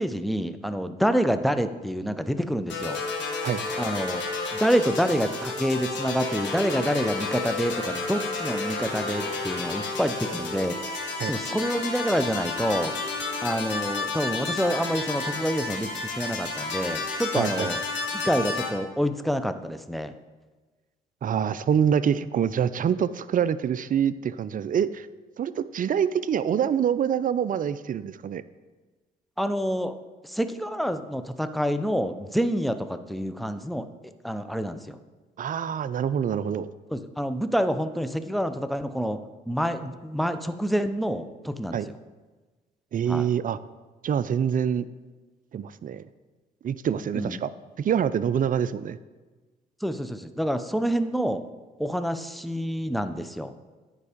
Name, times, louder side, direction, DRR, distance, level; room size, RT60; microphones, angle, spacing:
voice 1, 0.0-3.0 3.8-4.2 4.5-10.8 11.2-12.9 13.4-17.8 18.1-20.1 29.4-30.0 30.3-33.9 34.2-35.0 36.9-39.2 39.5-41.8 43.1-43.3 47.1-47.4 49.8-51.4 51.8-53.5, equal, ahead, 10 dB, 0.6 m, -27 dB
sound 1, 2.7-18.7, left 3 dB, 65° left, 1.7 m, -31 dB
voice 2, 17.3-17.7 21.2-25.1 25.4-28.4 35.4-36.7 41.7-41.9 42.9-43.6 44.0-44.9 45.5-46.1 46.6-47.5 47.8-49.0, right 8 dB, 45° right, 15 dB, 0.5 m, -25 dB
9.8 x 4.7 x 5.1 m, 1.3 s
supercardioid pair, 60°, 20 cm